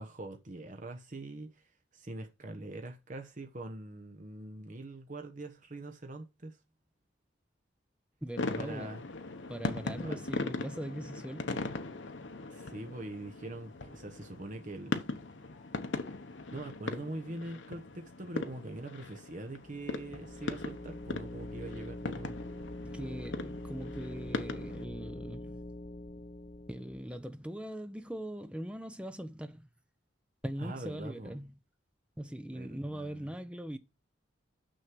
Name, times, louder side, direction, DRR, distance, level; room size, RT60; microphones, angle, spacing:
voice 1, 0.0-1.6 1.9-6.6 8.6-9.0 10.0-10.2 12.5-15.0 16.5-22.3 30.6-31.3 32.5-33.3, right 2 dB, 40° right, 1.0 m, -43 dB
voice 2, 8.2-8.9 9.5-11.8 22.8-25.6 26.7-29.7 30.4-31.5 32.2-33.8, right 1 dB, 5° right, 0.6 m, -41 dB
sound 1, 8.4-24.9, left 2 dB, 70° left, 1.0 m, -40 dB
sound 2, 19.5-27.3, left 1 dB, 40° left, 0.8 m, -44 dB
6.5 x 6.4 x 6.0 m
head